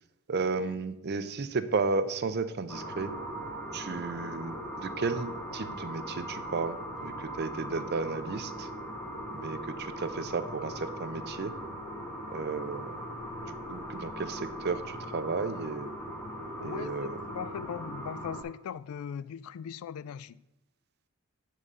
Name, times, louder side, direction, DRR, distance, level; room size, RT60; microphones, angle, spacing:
voice 1, 0.3-3.1 3.7-8.7 9.3-11.5 12.3-13.0 13.5-15.9 16.6-17.2, right 4 dB, 50° right, 0.5 m, -33 dB
sound 1, 2.7-18.4, equal, 10° left, 1.0 m, -39 dB
voice 2, 16.6-20.4, left 8 dB, 75° left, 0.3 m, -39 dB
7.9 x 3.7 x 6.6 m
head